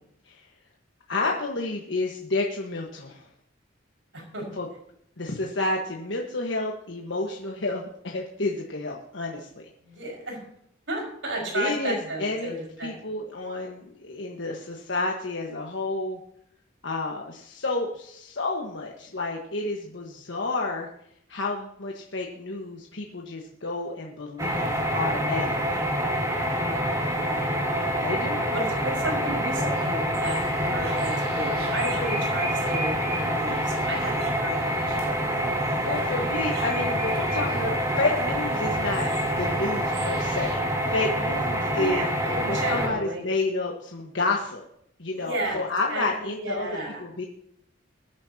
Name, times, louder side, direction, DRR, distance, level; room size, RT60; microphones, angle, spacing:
voice 1, 1.1-3.3 4.6-4.7 5.2-9.6 11.5-12.5 12.8-16.2 16.8-20.9 21.3-25.8 28.0-28.4 35.4-40.6 40.9-42.0 42.5-44.6 45.0-46.7 47.0-47.2, left 3 dB, 70° left, 0 dB, 1.4 m, -30 dB
voice 2, 4.1-4.5 9.8-10.4 10.9-13.0 26.4-26.8 27.1-27.6 28.5-35.4 41.7-43.2 45.1-46.1 46.4-47.0, right 1 dB, 75° right, 0 dB, 5.5 m, -33 dB
sound 1, 24.4-42.9, equal, 15° right, 2.0 m, -26 dB
sound 2, 30.1-40.6, right 2 dB, 50° right, 3.0 m, -40 dB
21.5 x 10.0 x 2.9 m, 0.73 s
head